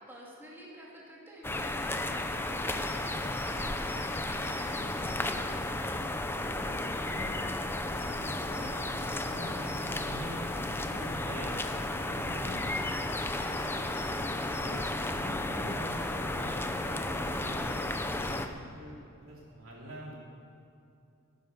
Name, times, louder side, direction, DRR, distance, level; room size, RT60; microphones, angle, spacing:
voice 1, 0.0-5.1 13.7-14.0, equal, 10° right, -5 dB, 2.4 m, -49 dB
sound 1, 1.4-18.5, left 2 dB, 10° left, 0.6 m, -33 dB
sound 2, 3.9-10.2, left 2 dB, 80° left, 1.2 m, -54 dB
voice 2, 7.0-10.4 10.9-11.5 11.9-12.7 13.9-14.1 14.6-14.8 15.1-16.7 17.3-17.6 18.1-20.2, equal, 70° right, -4 dB, 3.7 m, -45 dB
sound 3, 9.3-18.8, right 1 dB, 30° right, 2.5 m, -53 dB
15.0 x 10.0 x 6.7 m, 2.6 s
head